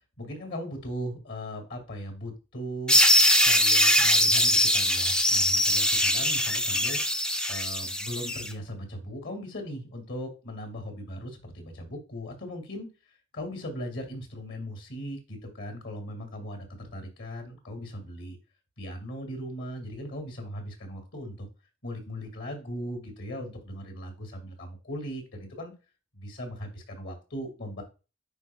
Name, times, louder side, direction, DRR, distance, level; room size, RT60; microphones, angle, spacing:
voice 1, 0.2-3.0 3.4-7.0 7.5-12.9 13.3-18.4 18.8-21.5 21.8-25.7 26.1-27.8, equal, 65° left, 5 dB, 2.1 m, -38 dB
sound 1, 2.9-8.5, left 1 dB, 5° left, 0.4 m, -22 dB
9.6 x 4.5 x 2.3 m, 0.32 s
head